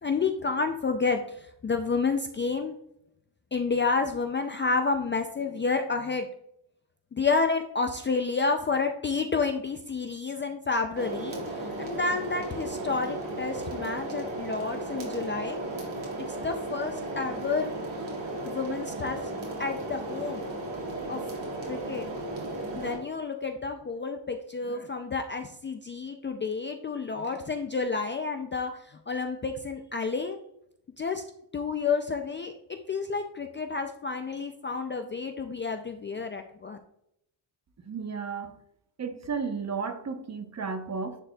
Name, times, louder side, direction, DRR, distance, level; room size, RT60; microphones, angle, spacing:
voice 1, 0.0-2.8 3.5-6.3 7.1-15.6 16.2-17.7 18.1-18.2 18.4-20.4 21.1-21.2 21.6-22.1 22.8-30.4 31.0-31.2 31.5-32.5 32.9-36.8, left 4 dB, 25° left, 5 dB, 0.4 m, -30 dB
sound 1, 11.0-23.0, right 2 dB, 70° right, 2.4 m, -35 dB
voice 2, 37.8-38.6 39.0-41.2, right 5 dB, 35° right, 6 dB, 0.8 m, -33 dB
9.9 x 4.1 x 2.3 m, 0.75 s
cardioid pair, 125°, 47 cm